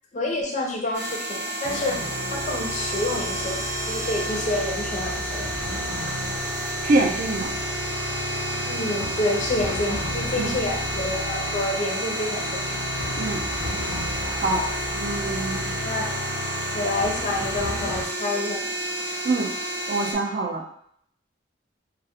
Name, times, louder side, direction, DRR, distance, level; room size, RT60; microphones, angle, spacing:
voice 1, 0.1-2.0 2.3-5.5 8.7-12.8 15.8-16.1 16.7-18.7, left 2 dB, 40° left, -1 dB, 0.4 m, -28 dB
sound 1, 0.9-20.1, right 1 dB, 65° right, 0.8 m, -31 dB
sound 2, 1.6-18.0, left 1 dB, 85° left, 0.6 m, -33 dB
voice 2, 6.8-7.5 10.3-10.5 13.2-13.4 14.3-14.6 14.9-15.7 19.2-19.5 19.9-20.6, right 2 dB, 50° right, 0 dB, 0.4 m, -25 dB
2.2 x 2.0 x 2.7 m, 0.68 s
head